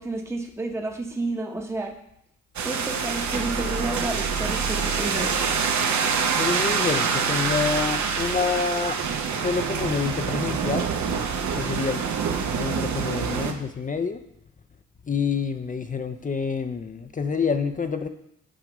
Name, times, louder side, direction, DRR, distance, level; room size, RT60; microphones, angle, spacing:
voice 1, 0.0-2.0 2.6-5.3, right 2 dB, 10° right, 2 dB, 0.8 m, -31 dB
sound 1, 2.6-13.5, right 6 dB, 60° right, 0.8 m, -26 dB
voice 2, 6.4-9.0 9.3-10.9 11.5-12.0 12.5-14.2 15.0-18.1, left 5 dB, 25° left, 8 dB, 0.5 m, -27 dB
8.6 x 4.8 x 3.1 m, 0.76 s
supercardioid pair, 60°, 32 cm